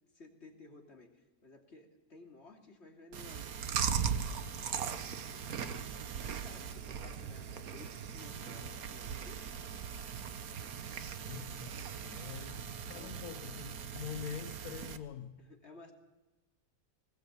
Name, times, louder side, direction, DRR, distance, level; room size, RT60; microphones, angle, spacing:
voice 1, 0.1-9.5 12.9-13.4 15.4-15.9, left 3 dB, 40° left, 3.1 m, -56 dB
Chewing mastication, 3.1-15.0, right 7 dB, 60° right, 1.4 m, -39 dB
voice 2, 9.7-10.1 11.2-15.4, left 9 dB, 60° left, 1.3 m, -45 dB
20.5 x 17.5 x 8.4 m
omnidirectional pair, 1.9 m